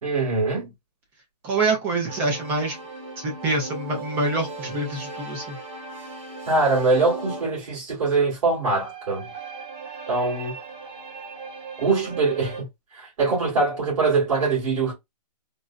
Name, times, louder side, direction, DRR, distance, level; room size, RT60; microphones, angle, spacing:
voice 1, 0.0-0.7 6.5-9.3 10.1-10.5 11.8-12.7 12.9-14.9, right 3 dB, 50° right, 2.2 m, -23 dB
voice 2, 1.4-2.8 3.2-5.6, right 2 dB, 10° right, 0.4 m, -25 dB
sound 1, 2.1-7.6 8.5-12.6, right 3 dB, 35° right, 1.5 m, -37 dB
3.8 x 2.0 x 2.3 m
hypercardioid pair, 155°, 21 cm